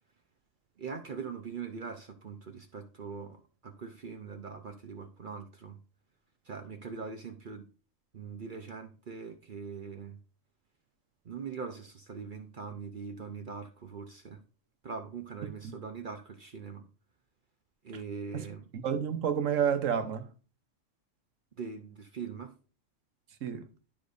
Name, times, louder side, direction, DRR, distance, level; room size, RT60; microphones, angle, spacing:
voice 1, 0.8-5.8 6.4-7.7 8.1-10.2 11.2-14.4 14.8-16.9 17.8-18.7 21.6-22.6, right 5 dB, 45° right, 0.8 m, -42 dB
voice 2, 18.7-20.3 23.4-23.7, right 8 dB, 80° right, 1.2 m, -30 dB
12.0 x 4.9 x 2.6 m
omnidirectional pair, 1.3 m